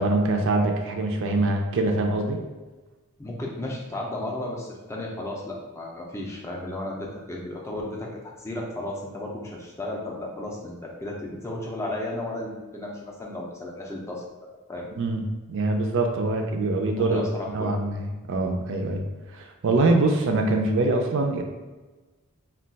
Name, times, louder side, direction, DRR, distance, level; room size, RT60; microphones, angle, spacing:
voice 1, 0.0-2.4 15.0-17.2 17.5-19.0 19.3-21.4, right 2 dB, 60° right, 3 dB, 0.4 m, -24 dB
voice 2, 3.2-8.1 8.4-14.2 14.7-14.9 16.9-17.7, left 1 dB, 10° left, -2 dB, 0.4 m, -34 dB
2.3 x 2.2 x 3.8 m, 1.2 s
head